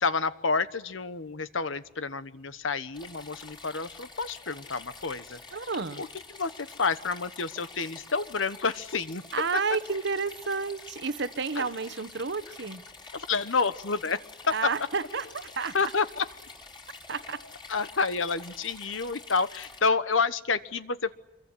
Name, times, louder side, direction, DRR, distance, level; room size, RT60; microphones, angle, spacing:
voice 1, 0.0-5.4 6.0-6.1 6.4-9.2 11.6-11.7 13.1-14.2 15.7-16.3 17.7-21.1, left 4 dB, 90° left, 1.2 m, -29 dB
sound 1, 2.9-19.8, left 4 dB, 25° left, 3.4 m, -47 dB
voice 2, 5.5-6.0 9.3-12.8 14.5-15.9 17.1-17.4, right 4 dB, 65° right, 1.2 m, -31 dB
26.0 x 23.0 x 9.9 m
head